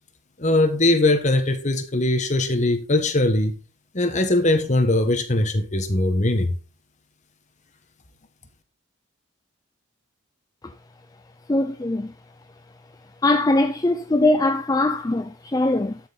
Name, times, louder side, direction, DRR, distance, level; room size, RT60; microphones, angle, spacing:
voice 1, 0.4-3.5 3.9-6.5, left 2 dB, 35° left, 1.4 m, -20 dB
voice 2, 11.5-12.1 13.2-16.0, left 2 dB, 20° left, 0.4 m, -21 dB
12.5 x 5.6 x 4.1 m
head